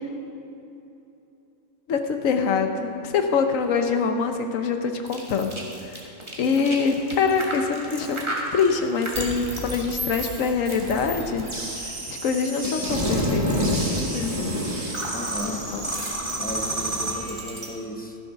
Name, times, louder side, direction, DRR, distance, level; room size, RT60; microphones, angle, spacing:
voice 1, 1.9-5.5 5.9-6.0 6.4-11.5 12.1-14.4 15.4-15.9, left 5 dB, 70° left, 6 dB, 1.2 m, -24 dB
sound 1, 5.0-17.7, equal, 20° right, 1.5 m, -29 dB
voice 2, 15.1-15.7 16.4-18.2, right 1 dB, 15° left, 2 dB, 0.3 m, -35 dB
12.5 x 7.3 x 5.7 m, 2.8 s
omnidirectional pair, 1.4 m